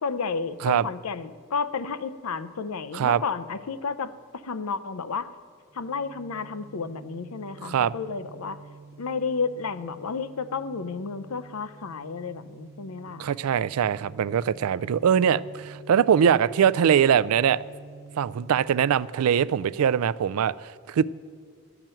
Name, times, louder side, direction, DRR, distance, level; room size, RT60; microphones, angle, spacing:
voice 1, 0.0-5.3 5.7-8.6 9.0-13.3, left 5 dB, 85° left, 13 dB, 0.6 m, -32 dB
sound 1, 5.7-20.2, right 3 dB, 15° right, 0.6 m, -48 dB
voice 2, 7.6-7.9 13.2-17.6 18.2-21.0, right 8 dB, 85° right, 17 dB, 0.3 m, -22 dB
12.0 x 6.0 x 8.9 m, 2.1 s
head